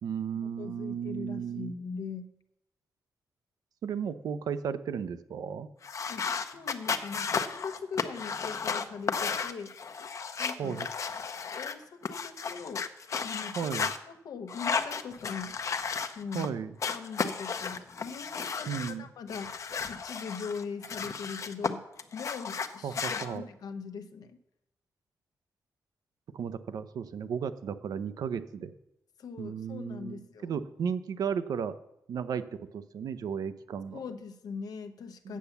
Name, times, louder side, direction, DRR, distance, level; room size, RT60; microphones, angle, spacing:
voice 1, 0.0-1.7 3.8-5.7 10.6-10.9 13.6-13.9 16.3-16.7 18.7-19.1 22.8-23.4 26.3-28.7 29.4-31.7 32.1-34.0 35.2-35.4, right 7 dB, 80° right, 12 dB, 0.6 m, -34 dB
voice 2, 0.6-2.3 6.1-9.7 10.4-10.8 11.5-12.9 13.2-13.6 14.1-15.6 16.2-16.5 16.9-18.7 19.0-19.6 19.9-21.9 22.1-24.4 29.2-30.5 33.9-35.4, left 5 dB, 85° left, 8 dB, 0.8 m, -41 dB
sound 1, 5.8-14.0 14.5-16.5 16.8-18.9 19.3-21.7 22.0-23.3, left 5 dB, 55° left, 0.7 m, -34 dB
8.4 x 7.0 x 6.9 m, 0.85 s
wide cardioid pair, 110°, 6 cm